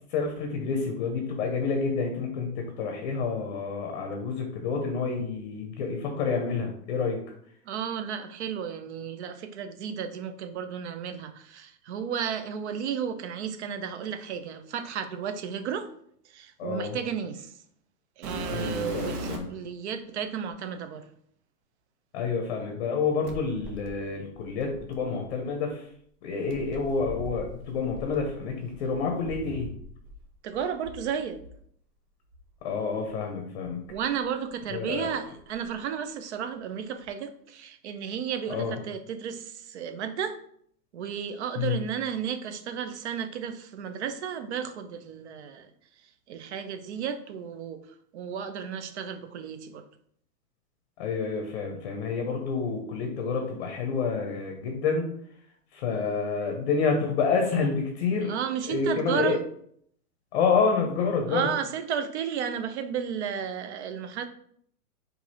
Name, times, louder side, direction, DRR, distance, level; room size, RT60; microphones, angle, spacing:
voice 1, 0.1-7.2 16.6-17.0 18.5-19.4 22.1-25.8 26.2-29.7 32.6-33.8 34.7-35.1 38.5-38.8 41.6-41.8 51.0-55.1 55.7-58.3 58.7-59.4 60.3-61.5, left 5 dB, 35° left, 3 dB, 0.7 m, -28 dB
voice 2, 7.7-15.9 16.2-17.5 18.2-21.0 30.4-31.4 33.9-40.4 40.9-45.7 46.3-47.8 48.1-49.8 58.2-59.4 61.3-64.2, right 8 dB, 45° right, 9 dB, 0.6 m, -33 dB
sound 1, 18.2-19.6 20.5-20.6 23.2-25.3 26.5-30.2 30.5-31.6 32.3-32.5 33.1-33.2 33.8-34.9 35.2-35.7 37.0-37.1, right 1 dB, 75° right, 1.2 m, -40 dB
4.6 x 2.7 x 4.2 m, 0.65 s
hypercardioid pair, 155°, 47 cm